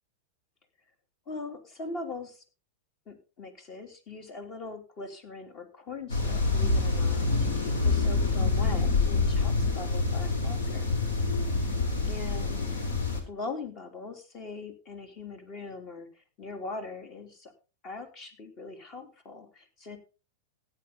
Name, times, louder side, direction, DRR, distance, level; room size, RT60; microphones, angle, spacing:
voice 1, 1.3-2.4 3.1-10.9 12.1-12.7 13.3-17.5 17.8-20.0, left 3 dB, 40° left, 7 dB, 3.4 m, -41 dB
sound 1, 6.1-13.2, left 3 dB, 80° left, 3.4 m, -26 dB
15.0 x 9.0 x 4.1 m, 0.33 s
hypercardioid pair, 110°, 0 cm